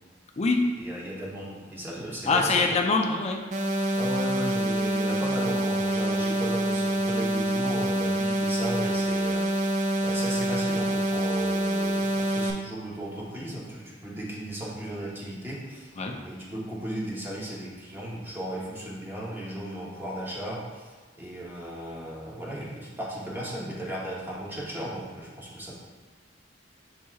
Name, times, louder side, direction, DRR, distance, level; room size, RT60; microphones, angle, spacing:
voice 1, 0.8-2.6 4.0-16.0 16.2-25.8, right 1 dB, 10° right, -5 dB, 0.9 m, -36 dB
voice 2, 2.2-3.4 3.8-4.0 16.0-16.2, left 3 dB, 35° left, 3 dB, 0.4 m, -24 dB
sound 1, 3.5-12.5, right 1 dB, 40° right, 0.4 m, -26 dB
7.3 x 2.8 x 2.3 m, 1.4 s
head